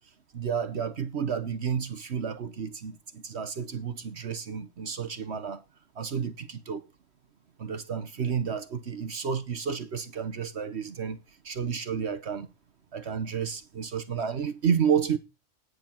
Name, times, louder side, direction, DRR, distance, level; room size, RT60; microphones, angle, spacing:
voice 1, 0.3-5.6 6.0-6.8 7.6-11.2 11.4-12.5 12.9-15.2, right 7 dB, 60° right, 1.3 m, -31 dB
11.0 x 9.4 x 5.9 m
omnidirectional pair, 1.3 m